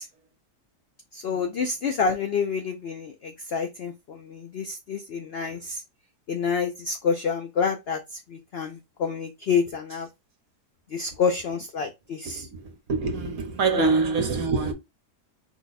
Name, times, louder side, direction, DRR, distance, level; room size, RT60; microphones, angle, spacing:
voice 1, 1.1-5.8 6.3-8.0 8.3-10.1 10.9-12.5 13.7-13.9, left 5 dB, 85° left, 0.5 m, -28 dB
voice 2, 12.2-14.7, right 4 dB, 60° right, 1.3 m, -26 dB
4.8 x 2.2 x 4.0 m
omnidirectional pair, 1.7 m